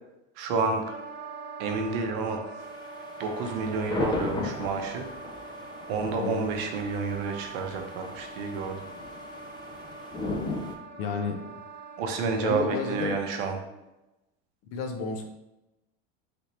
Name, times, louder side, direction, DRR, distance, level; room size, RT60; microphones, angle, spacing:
voice 1, 0.4-0.8 1.6-2.6 3.2-5.1 5.9-8.8 12.0-13.6, right 4 dB, 70° right, 4 dB, 0.7 m, -30 dB
Wind instrument woodwind instrument, 0.8-13.7, right 3 dB, 35° right, 0.6 m, -43 dB
sound 1, 2.6-10.8, left 2 dB, 15° left, 0.4 m, -37 dB
voice 2, 6.2-6.5 11.0-11.5 12.4-13.2 14.7-15.2, left 4 dB, 55° left, 5 dB, 0.6 m, -31 dB
3.4 x 2.8 x 3.0 m, 0.95 s
supercardioid pair, 115°, 29 cm